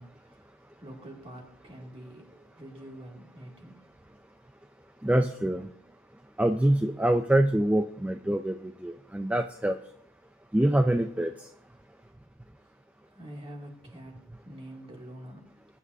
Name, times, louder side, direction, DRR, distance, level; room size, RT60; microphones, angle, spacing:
voice 1, 0.0-3.9 12.6-12.7 13.1-15.5, right 1 dB, 30° right, 2.5 m, -46 dB
voice 2, 5.0-5.7 6.4-8.6 8.8-9.8 10.5-11.3, right 1 dB, 5° right, 0.4 m, -25 dB
20.5 x 9.7 x 2.7 m
head